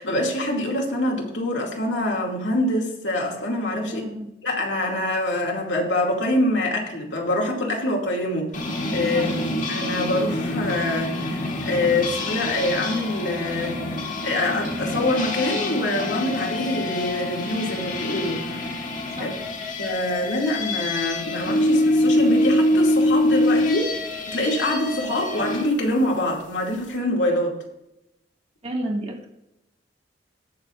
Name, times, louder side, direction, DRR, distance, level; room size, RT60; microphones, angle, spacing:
voice 1, 0.0-4.0 4.4-8.5 8.9-9.3 9.7-18.8 19.2-19.3 19.8-24.0 24.3-27.6, left 1 dB, 85° left, -1 dB, 2.3 m, -25 dB
voice 2, 3.8-4.3 9.0-9.5 19.1-19.4 24.9-25.0 28.6-29.3, right 1 dB, 35° right, -1 dB, 1.8 m, -31 dB
sound 1, 8.5-25.7, left 1 dB, 45° left, 1.5 m, -25 dB
18.5 x 6.8 x 2.5 m, 0.87 s
head